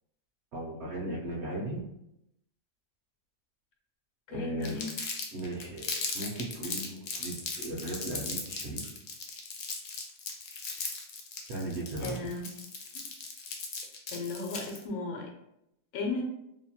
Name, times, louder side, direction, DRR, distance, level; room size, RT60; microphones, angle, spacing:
voice 1, 0.5-1.8 4.3-4.8 5.3-8.9 11.5-12.1, right 1 dB, 65° right, -3 dB, 0.7 m, -37 dB
voice 2, 4.3-4.8 12.0-12.5 12.9-13.0 14.1-15.3 15.9-16.2, left 3 dB, 90° left, 2 dB, 1.1 m, -35 dB
Crumpling crinkling, 4.6-14.8, left 4 dB, 70° left, 0.6 m, -37 dB
2.8 x 2.2 x 2.7 m, 0.84 s
omnidirectional pair, 1.6 m